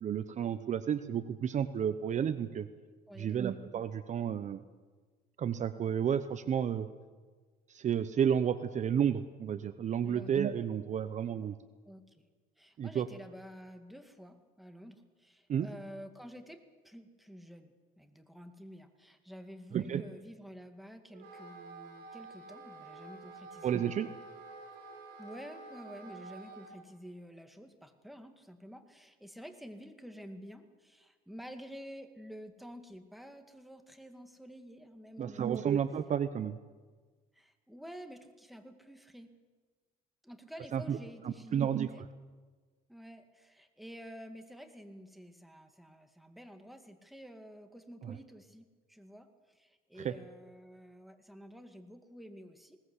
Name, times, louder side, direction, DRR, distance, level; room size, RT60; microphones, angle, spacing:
voice 1, 0.0-2.7 3.2-4.6 5.4-6.9 7.7-11.5 12.8-13.1 15.5-15.7 19.7-20.0 23.6-24.1 35.2-36.6 40.7-41.0 41.2-41.9 48.0-48.1 50.0-50.2, right 8 dB, 45° right, 13 dB, 0.8 m, -31 dB
voice 2, 3.1-3.6 10.0-10.3 11.9-12.3 12.6-24.2 25.2-35.7 37.3-39.3 40.2-42.0 42.9-52.8, equal, ahead, 6 dB, 2.1 m, -50 dB
Wind instrument woodwind instrument, 21.1-26.8, right 3 dB, 70° right, 6.3 m, -49 dB
20.5 x 18.5 x 8.2 m, 1.4 s
cardioid pair, 110°, 17 cm